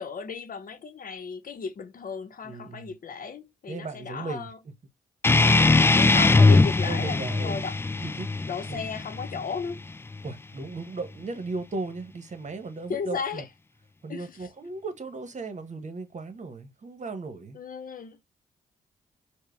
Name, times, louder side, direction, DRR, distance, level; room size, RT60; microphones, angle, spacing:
voice 1, 0.0-4.6 5.9-7.8 8.5-9.8 12.9-13.5 14.1-14.3 17.5-18.2, left 5 dB, 55° left, 0.8 m, -35 dB
voice 2, 2.4-2.9 3.7-4.5 5.9-7.7 8.0-8.3 8.7-8.8 10.2-13.4 14.0-17.6, right 3 dB, 45° right, 1.1 m, -36 dB
sound 1, 5.2-10.3, left 3 dB, 15° left, 0.3 m, -21 dB
4.6 x 2.2 x 3.2 m
supercardioid pair, 45°, 17 cm